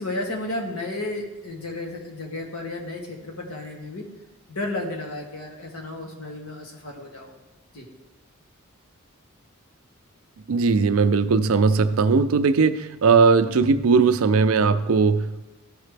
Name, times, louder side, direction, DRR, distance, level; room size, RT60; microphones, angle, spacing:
voice 1, 0.0-4.0 4.5-7.3 7.7-7.9, left 2 dB, 80° left, 0 dB, 1.5 m, -33 dB
voice 2, 10.5-15.4, right 4 dB, 70° right, 11 dB, 0.5 m, -19 dB
13.5 x 4.9 x 3.3 m, 1.1 s
head